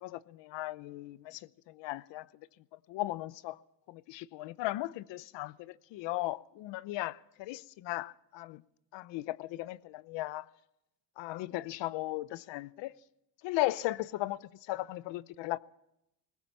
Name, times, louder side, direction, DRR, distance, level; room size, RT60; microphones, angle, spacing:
voice 1, 0.0-1.4 1.7-2.2 2.9-3.6 3.9-8.6 8.9-10.5 11.2-12.9 13.4-14.4 14.7-15.6, left 17 dB, 70° left, 0.8 m, -36 dB
21.0 x 19.5 x 7.3 m
cardioid pair, 170°, 46 cm